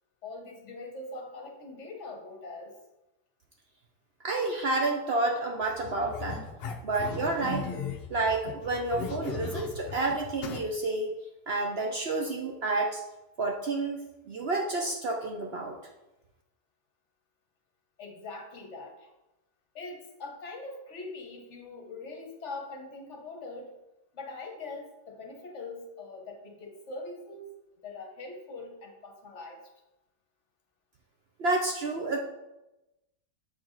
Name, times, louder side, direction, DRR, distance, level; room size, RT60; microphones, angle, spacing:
voice 1, 0.2-2.7 18.0-19.1 19.7-23.7 24.1-27.5 27.8-29.7, left 3 dB, 50° left, 2 dB, 1.1 m, -42 dB
voice 2, 4.2-6.4 6.8-7.7 8.1-11.1 11.5-13.0 13.4-14.0 14.3-15.7 31.4-32.2, right 2 dB, 60° right, 1 dB, 0.6 m, -29 dB
sound 1, 5.6-10.6, left 5 dB, 65° left, 0.5 m, -37 dB
7.4 x 4.6 x 3.8 m, 0.98 s
omnidirectional pair, 1.7 m